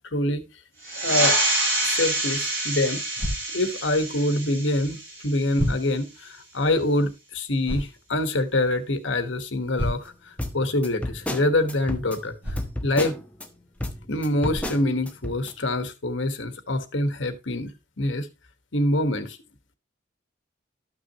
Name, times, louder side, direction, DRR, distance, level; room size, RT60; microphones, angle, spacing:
voice 1, 0.1-0.4 1.0-1.4 1.8-3.0 3.5-12.6 12.8-13.2 14.1-17.7 18.0-18.3 18.7-19.4, left 1 dB, 80° left, 1.3 m, -25 dB
sound 1, 0.8-5.9, right 2 dB, 50° right, 5.8 m, -27 dB
sound 2, 3.2-3.4 4.8-4.9 5.5-5.8 7.6-7.9 9.7-10.2 12.4-12.7 13.8-13.9 14.5-14.7, equal, 10° right, 3.9 m, -29 dB
sound 3, 10.4-13.5 13.8-15.5, left 1 dB, 5° left, 0.9 m, -32 dB
13.0 x 6.1 x 2.8 m
head